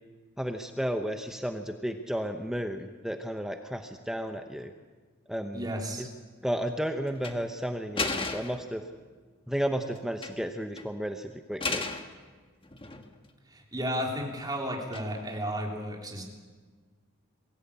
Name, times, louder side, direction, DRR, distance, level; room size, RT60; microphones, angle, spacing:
voice 1, 0.4-4.7 5.3-5.7 6.0-6.1 6.4-8.8 9.5-11.8, equal, ahead, 6 dB, 0.8 m, -33 dB
voice 2, 5.5-6.1 13.5-16.2, equal, 20° right, 0 dB, 3.5 m, -33 dB
sound 1, 7.1-7.4 8.0-8.7 10.0-10.5 10.8-10.9 11.6-12.1 12.6-13.3 14.9-15.4, left 3 dB, 25° left, 1.4 m, -34 dB
23.0 x 16.0 x 8.6 m, 1.4 s
head